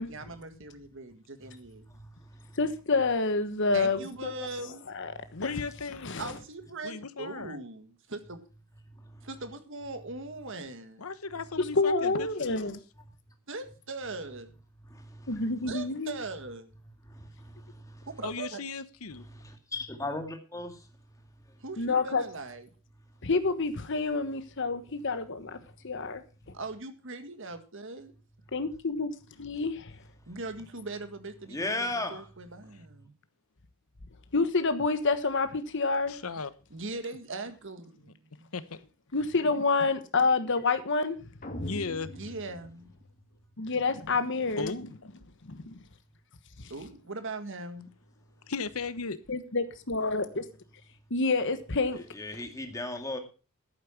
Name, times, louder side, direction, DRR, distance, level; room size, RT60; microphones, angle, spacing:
voice 1, 0.1-1.8 3.7-4.9 6.2-8.4 9.2-11.1 13.5-14.5 15.7-16.7 18.2-18.6 21.6-22.7 26.5-28.1 30.3-33.2 36.7-38.5 42.1-42.9 46.7-47.9, right 3 dB, 65° right, 1.8 m, -40 dB
voice 2, 2.6-4.3 4.9-5.1 5.4-5.5 6.0-6.3 11.8-12.8 15.3-16.2 21.8-22.2 23.2-25.6 25.8-26.2 28.5-29.1 29.4-29.9 34.3-36.2 39.1-41.2 43.6-44.8 45.4-45.8 49.3-50.4 51.1-52.0, left 3 dB, 60° left, 1.3 m, -28 dB
voice 3, 5.3-6.2 6.8-7.6 11.0-12.6 18.2-19.3 36.1-36.5 38.5-38.9 41.6-42.1 44.0-44.1 44.6-45.1 48.5-49.2, left 4 dB, 85° left, 1.0 m, -36 dB
voice 4, 14.9-15.3 17.1-18.1 19.3-20.9 31.5-32.2 52.1-53.2, left 2 dB, 15° left, 2.1 m, -36 dB
sound 1, 41.4-43.5, left 1 dB, 40° left, 2.2 m, -41 dB
12.0 x 8.8 x 5.9 m
head